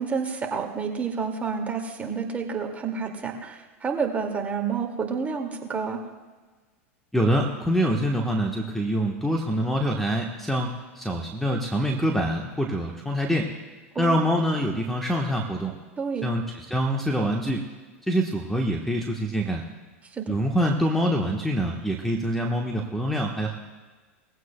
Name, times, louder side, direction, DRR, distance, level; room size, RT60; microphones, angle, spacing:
voice 1, 0.0-6.0 13.9-14.2 16.0-16.3 20.1-20.3, right 5 dB, 20° right, 1 dB, 2.2 m, -29 dB
voice 2, 7.1-13.5 14.0-15.7 16.2-17.6 18.1-19.6 20.3-23.6, equal, 5° left, 1 dB, 1.2 m, -25 dB
20.5 x 16.0 x 2.3 m, 1.3 s
hypercardioid pair, 95°, 7 cm